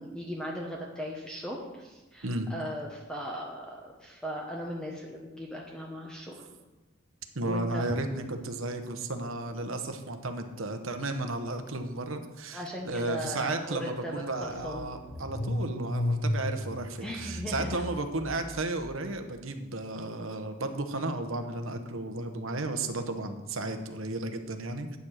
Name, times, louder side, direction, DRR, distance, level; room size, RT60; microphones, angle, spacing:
voice 1, 0.0-6.5 7.4-7.9 12.5-14.8 17.0-17.7, equal, 5° left, -2 dB, 1.0 m, -38 dB
voice 2, 7.3-24.9, right 2 dB, 70° right, 6 dB, 1.1 m, -34 dB
Car / Engine starting, 13.4-13.5 13.8-19.0, left 1 dB, 55° left, 1.3 m, -34 dB
9.4 x 7.4 x 6.5 m, 1.1 s
head